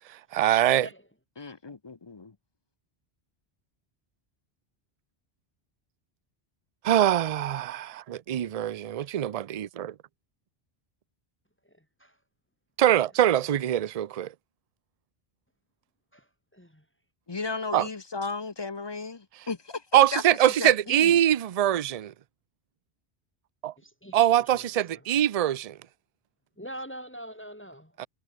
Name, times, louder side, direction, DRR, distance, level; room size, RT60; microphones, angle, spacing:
voice 1, 0.3-0.9 6.8-9.9 12.8-14.3 17.7-17.9 19.9-22.1 23.6-23.7 24.1-25.8 28.0-28.1, right 11 dB, 45° right, 0.5 m, -23 dB
voice 2, 1.4-2.3 17.3-19.8 20.1-21.2, left 4 dB, 30° left, 0.7 m, -35 dB
voice 3, 16.5-16.8 23.8-24.7 24.9-25.0 26.6-27.9, right 1 dB, 10° left, 3.2 m, -43 dB
omnidirectional pair, 1.1 m